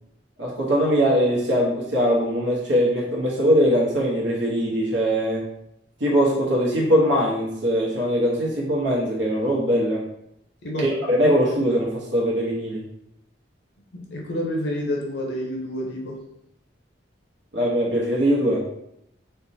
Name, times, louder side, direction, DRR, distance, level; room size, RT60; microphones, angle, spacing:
voice 1, 0.4-5.4 6.0-10.0 10.8-12.8 17.5-18.6, equal, 85° right, -5 dB, 0.9 m, -21 dB
voice 2, 10.6-10.9 13.9-16.2, equal, 65° left, -1 dB, 0.6 m, -29 dB
4.3 x 2.1 x 2.7 m, 0.79 s
head